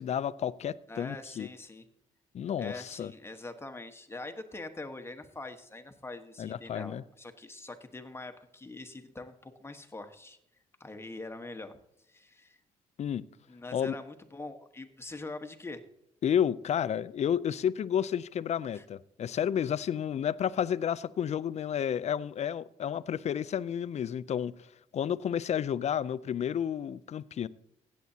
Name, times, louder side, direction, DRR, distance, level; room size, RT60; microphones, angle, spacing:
voice 1, 0.0-1.5 2.3-3.1 6.4-7.0 13.0-13.2 13.7-13.9 16.2-24.5 24.9-27.5, left 9 dB, 50° left, 0.5 m, -31 dB
voice 2, 0.9-1.9 2.6-10.4 10.8-11.8 12.1-12.6 13.5-15.8 18.7-18.8, left 2 dB, 15° left, 1.3 m, -43 dB
16.0 x 8.4 x 2.8 m
supercardioid pair, 65°, 14 cm